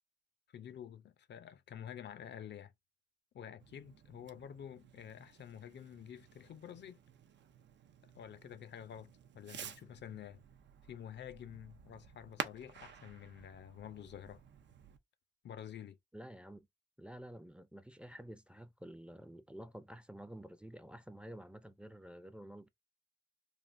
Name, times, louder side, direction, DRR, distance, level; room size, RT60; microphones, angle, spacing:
voice 1, 0.5-2.7 3.3-7.0 8.2-10.4 10.9-14.4 15.4-16.0, left 9 dB, 75° left, 0.4 m, -49 dB
Fireworks, 3.6-15.0, right 8 dB, 90° right, 0.5 m, -51 dB
voice 2, 16.1-16.7 17.0-22.7, right 1 dB, 5° right, 0.4 m, -50 dB
3.4 x 2.4 x 2.5 m
wide cardioid pair, 95°, 18 cm